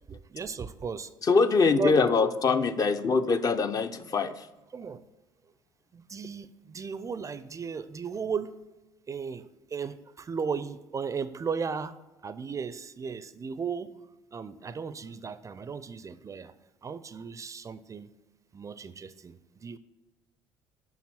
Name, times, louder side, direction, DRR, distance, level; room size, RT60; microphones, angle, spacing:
voice 1, 0.0-1.1 1.6-2.1 4.7-5.0 5.9-8.6 9.1-13.9 14.3-16.5 16.8-18.1 18.5-19.8, right 5 dB, 30° right, 15 dB, 0.5 m, -35 dB
voice 2, 1.2-4.5, left 4 dB, 35° left, 9 dB, 0.6 m, -23 dB
7.3 x 5.6 x 5.9 m, 1.1 s
figure-of-eight pair, 55°, 11 cm